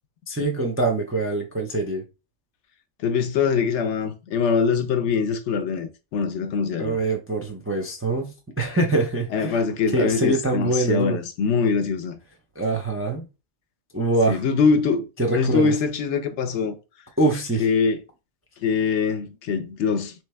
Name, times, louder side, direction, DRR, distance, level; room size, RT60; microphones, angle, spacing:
voice 1, 0.3-2.0 6.8-9.6 9.9-11.2 12.6-13.2 13.9-14.4 15.2-15.7 17.2-17.7, right 2 dB, 20° right, 0.3 m, -24 dB
voice 2, 3.0-7.0 9.3-12.2 14.3-15.1 15.3-16.8 17.6-18.0 18.6-20.1, left 5 dB, 70° left, 0.9 m, -23 dB
3.2 x 3.1 x 3.3 m
omnidirectional pair, 1.3 m